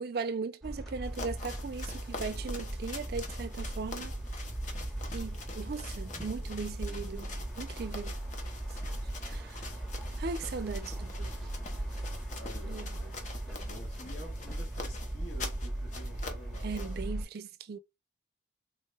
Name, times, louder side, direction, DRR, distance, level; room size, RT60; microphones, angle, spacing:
voice 1, 0.0-4.1 5.1-8.1 9.2-9.7 10.2-11.3 12.7-12.9 16.6-17.8, right 4 dB, 55° right, 0.4 m, -38 dB
sound 1, 0.6-17.2, right 1 dB, ahead, 0.8 m, -38 dB
sound 2, 1.0-17.0, left 3 dB, 40° left, 0.7 m, -46 dB
voice 2, 11.2-11.7 12.4-17.0, equal, 70° left, 1.1 m, -50 dB
3.5 x 2.2 x 3.2 m
head